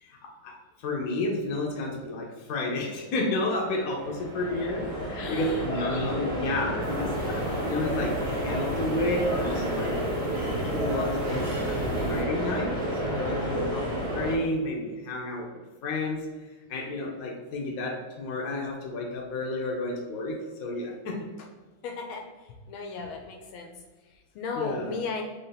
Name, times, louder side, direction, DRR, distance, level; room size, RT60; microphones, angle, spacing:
voice 1, 0.0-0.6 0.8-9.9 10.6-12.7 13.0-16.3 16.7-21.3 23.0-23.1 24.5-25.0, left 2 dB, 60° left, -1 dB, 1.0 m, -31 dB
sound 1, 3.5-14.3, equal, 45° right, 0.4 m, -30 dB
voice 2, 5.1-5.6 21.8-22.3 22.7-23.7 24.3-25.2, left 4 dB, 75° left, 3 dB, 1.3 m, -35 dB
sound 2, 6.8-12.2, right 4 dB, 85° right, 1.5 m, -39 dB
4.2 x 2.7 x 3.9 m, 1.3 s
omnidirectional pair, 2.4 m